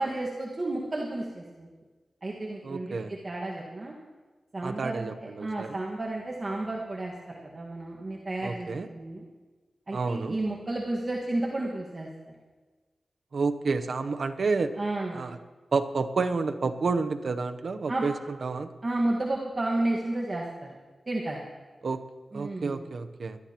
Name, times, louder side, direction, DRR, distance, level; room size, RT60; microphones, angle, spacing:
voice 1, 0.0-1.7 2.2-3.9 4.5-9.2 9.9-12.1 14.8-15.2 17.9-18.0 18.8-20.7 21.1-21.4 22.3-22.8, right 2 dB, 40° right, -3 dB, 1.5 m, -32 dB
voice 2, 2.6-3.1 4.6-5.8 8.4-8.9 9.9-10.4 13.3-14.7 15.1-15.4 15.7-18.7 21.8-22.0 22.3-23.4, right 4 dB, 70° right, 8 dB, 0.7 m, -30 dB
21.5 x 13.0 x 2.9 m, 1.3 s
wide cardioid pair, 85°, 0 cm